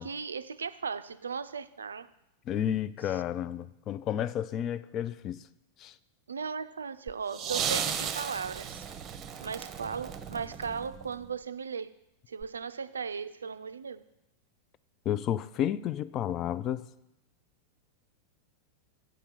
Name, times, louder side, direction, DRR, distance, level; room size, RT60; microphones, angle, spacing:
voice 1, 0.0-2.1 3.1-3.2 6.3-8.9 9.4-11.9 12.3-14.0, right 6 dB, 70° right, 0.4 m, -37 dB
voice 2, 2.5-5.5 5.8-5.9 15.1-16.9, left 10 dB, 35° left, 0.3 m, -31 dB
sound 1, 7.1-11.3 12.4-12.5, right 8 dB, 30° right, 0.7 m, -35 dB
7.6 x 5.6 x 6.7 m
figure-of-eight pair, 90°, 0 cm